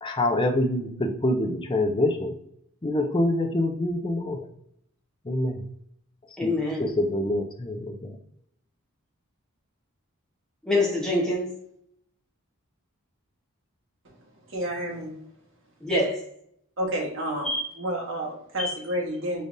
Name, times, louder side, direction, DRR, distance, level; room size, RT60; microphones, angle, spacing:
voice 1, 0.0-2.3 2.8-4.4 5.2-5.6 6.4-6.5 6.8-8.2, left 1 dB, 20° left, 4 dB, 0.5 m, -26 dB
voice 2, 6.4-6.9 10.7-11.5 15.8-16.2 17.4-17.6 18.6-18.7, left 2 dB, 5° left, -3 dB, 1.2 m, -25 dB
voice 3, 14.5-15.1 16.8-17.5 17.8-19.4, right 1 dB, 60° right, -2 dB, 1.4 m, -30 dB
5.1 x 3.3 x 2.6 m, 0.71 s
head